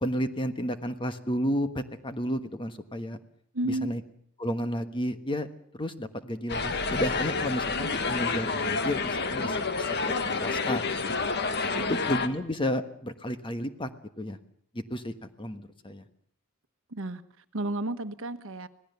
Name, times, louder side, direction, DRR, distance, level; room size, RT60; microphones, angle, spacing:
voice 1, 0.0-3.2 3.6-4.0 4.4-5.5 5.7-9.6 10.0-10.1 10.4-11.1 11.9-13.9 14.2-14.4 14.7-16.0, equal, 25° left, 1.3 m, -32 dB
voice 2, 3.5-3.9 11.7-12.0 16.9-17.2 17.5-18.7, right 1 dB, 65° right, 1.2 m, -32 dB
sound 1, 6.5-12.3, left 4 dB, 50° left, 1.5 m, -29 dB
26.0 x 18.0 x 6.9 m
head